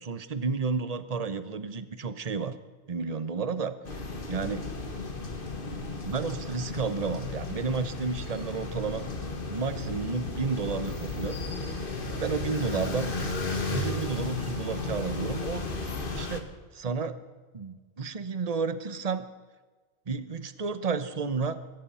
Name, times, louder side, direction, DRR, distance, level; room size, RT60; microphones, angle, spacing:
voice 1, 0.0-2.5 2.9-3.8 4.3-4.7 6.0-9.0 9.5-11.4 12.2-13.1 13.7-15.6 16.1-16.5 16.7-17.2 17.5-19.3 20.1-21.6, right 4 dB, 30° right, 12 dB, 0.9 m, -31 dB
sound 1, 3.8-16.4, left 3 dB, 40° left, 1.7 m, -34 dB
23.5 x 10.0 x 5.6 m, 1.4 s
omnidirectional pair, 1.4 m